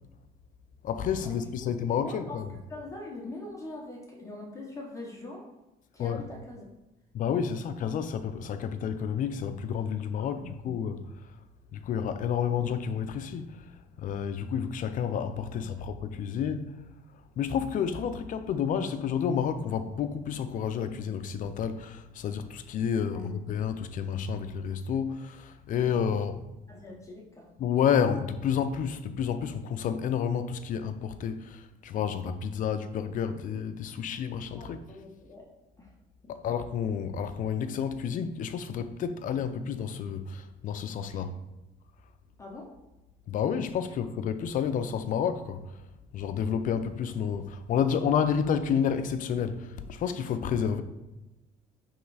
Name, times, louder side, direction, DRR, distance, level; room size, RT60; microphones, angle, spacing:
voice 1, 0.8-2.5 6.0-6.2 7.1-11.0 11.7-13.6 14.0-16.8 17.4-26.4 27.6-34.8 36.3-41.3 43.3-45.6 46.1-50.8, left 7 dB, 50° left, 0.4 m, -30 dB
voice 2, 2.0-2.4 2.7-5.5 5.9-6.6 10.2-10.6 15.5-15.7 23.0-23.4 26.7-27.5 34.6-35.4 35.8-35.9 36.2-36.3 41.1-41.2 42.4-42.7, left 2 dB, 20° left, 0.9 m, -43 dB
3.7 x 3.1 x 4.7 m
cardioid pair, 110°, 17 cm